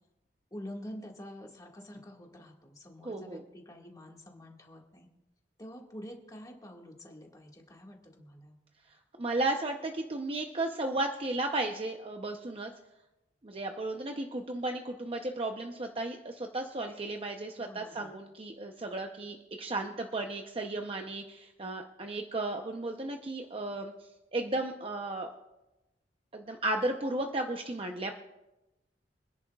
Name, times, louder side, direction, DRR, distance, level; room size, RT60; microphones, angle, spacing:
voice 1, 0.5-5.1 5.6-8.6 17.6-18.2, equal, 20° left, 0 dB, 1.9 m, -47 dB
voice 2, 3.0-3.4 8.9-12.7 13.4-23.9 24.3-25.3 26.3-28.1, right 2 dB, 30° right, 3 dB, 0.8 m, -34 dB
26.0 x 10.5 x 2.4 m, 0.97 s
head